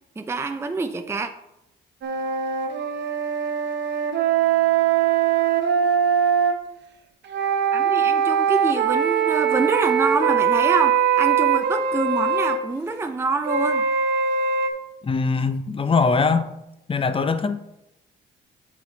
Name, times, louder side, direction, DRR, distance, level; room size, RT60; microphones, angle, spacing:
voice 1, 0.2-1.3 7.7-13.9, right 3 dB, 15° right, 0.5 m, -26 dB
sound 1, 2.0-6.6 7.3-12.6 13.5-14.7, right 7 dB, 65° right, 0.9 m, -21 dB
voice 2, 15.0-16.5 16.9-17.8, left 4 dB, 25° left, 0.6 m, -22 dB
7.6 x 5.5 x 4.0 m
cardioid pair, 90°, 20 cm